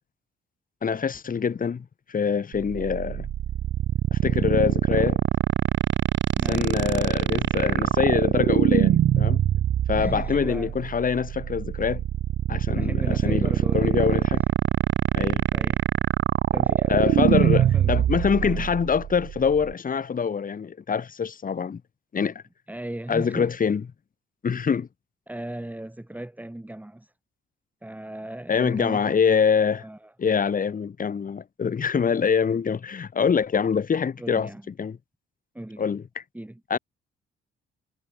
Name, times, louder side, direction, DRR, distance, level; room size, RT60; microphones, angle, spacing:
voice 1, 0.8-3.3 4.1-5.2 6.5-9.4 9.9-12.0 12.5-14.4 15.2-15.4 16.9-21.8 22.1-22.4 23.1-23.8 24.4-24.9 28.5-29.8 30.2-34.5 34.8-35.0 35.8-36.0 36.7-36.8, left 6 dB, 45° left, 5.4 m, -24 dB
sound 1, 2.5-19.7, right 11 dB, 70° right, 3.2 m, -23 dB
voice 2, 6.4-6.9 9.9-10.7 12.5-14.0 15.5-15.8 16.5-18.0 18.4-18.7 22.7-23.5 25.3-27.1 27.8-29.3 29.7-30.1 34.2-34.7 35.5-35.9 36.3-36.6, right 1 dB, 10° right, 6.8 m, -37 dB
cardioid pair, 90°, 20 cm